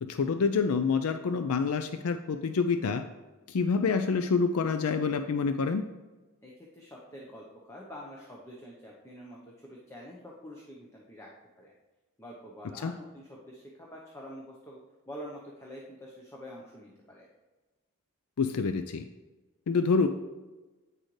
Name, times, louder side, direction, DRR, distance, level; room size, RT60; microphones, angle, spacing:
voice 1, 0.0-3.0 3.5-5.8 12.8-12.9 18.4-19.0 19.7-20.1, left 5 dB, 80° left, 8 dB, 0.4 m, -27 dB
voice 2, 6.4-11.3 11.6-11.7 12.2-14.8 15.1-17.3, equal, 10° left, -3 dB, 0.9 m, -46 dB
9.0 x 6.4 x 3.2 m, 1.2 s
head